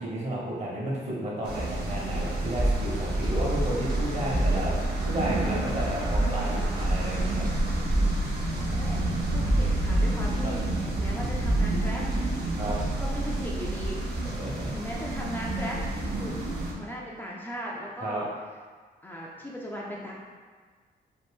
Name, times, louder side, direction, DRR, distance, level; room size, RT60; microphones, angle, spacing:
voice 1, 0.0-4.8 5.0-7.4 10.4-10.5 12.5-12.8 14.2-14.7 18.0-18.2, right 1 dB, 40° right, -5 dB, 1.1 m, -32 dB
sound 1, 1.4-16.7, right 2 dB, 75° right, 0.7 m, -29 dB
sound 2, 2.6-11.0 11.2-13.2, right 1 dB, 25° right, 0.7 m, -31 dB
voice 2, 8.7-12.0 12.3-14.4 14.7-15.9 16.1-16.3 16.7-18.3 19.0-20.1, equal, 10° left, -5 dB, 0.4 m, -38 dB
2.6 x 2.5 x 3.5 m, 1.5 s
cardioid pair, 75°, 17 cm